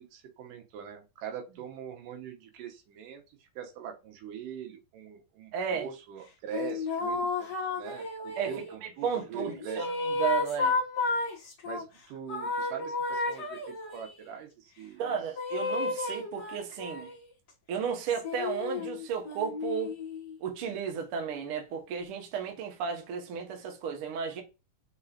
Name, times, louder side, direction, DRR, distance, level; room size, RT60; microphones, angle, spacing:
voice 1, 0.0-9.9 11.7-15.2, right 8 dB, 80° right, 2.5 m, -43 dB
voice 2, 5.5-5.9 8.4-8.5 9.0-10.8 15.0-17.1 17.7-19.9 20.4-24.4, right 7 dB, 65° right, 1.4 m, -33 dB
sound 1, 6.5-8.7 9.4-11.8 12.3-14.1 15.3-17.3 18.1-20.4, left 3 dB, 60° left, 1.0 m, -33 dB
5.4 x 4.1 x 2.4 m
omnidirectional pair, 3.9 m